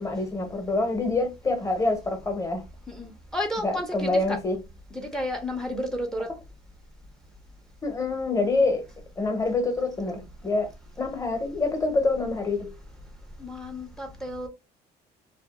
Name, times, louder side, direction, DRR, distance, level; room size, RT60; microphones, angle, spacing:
voice 1, 0.0-2.6 3.6-4.6 7.8-8.8 9.2-10.7 11.0-12.7, left 3 dB, 20° left, 0.9 m, -26 dB
voice 2, 2.9-4.4 4.9-6.3 13.4-14.5, left 1 dB, 5° left, 0.5 m, -32 dB
2.7 x 2.3 x 2.3 m
cardioid pair, 110°, 17 cm